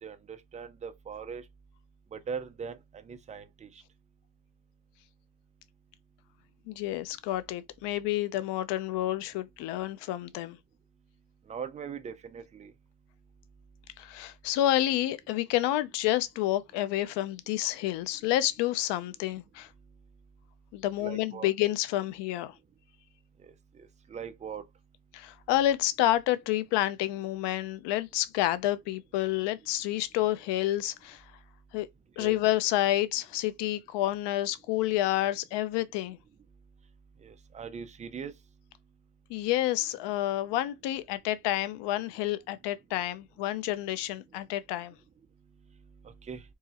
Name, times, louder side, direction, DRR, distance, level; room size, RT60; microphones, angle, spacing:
voice 1, 0.0-1.4 2.1-2.8 3.1-3.7 11.5-12.7 21.0-21.5 23.8-24.6 32.2-32.4 37.2-38.3 46.3-46.4, right 6 dB, 20° right, 0.3 m, -40 dB
voice 2, 6.7-10.6 14.0-19.7 20.7-22.5 25.1-31.2 31.7-31.9 32.2-36.2 39.3-45.0, left 14 dB, 65° left, 0.6 m, -29 dB
4.7 x 2.9 x 2.9 m
cardioid pair, 155°, 44 cm